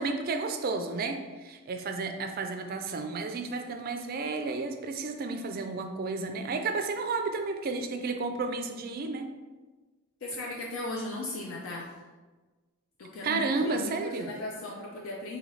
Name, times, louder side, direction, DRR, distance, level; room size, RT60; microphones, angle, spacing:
voice 1, 0.0-9.3 13.2-14.3, right 3 dB, 45° right, 6 dB, 0.3 m, -32 dB
voice 2, 10.2-11.9 13.0-15.4, left 2 dB, 65° left, -2 dB, 0.5 m, -37 dB
3.9 x 2.7 x 3.1 m, 1.3 s
head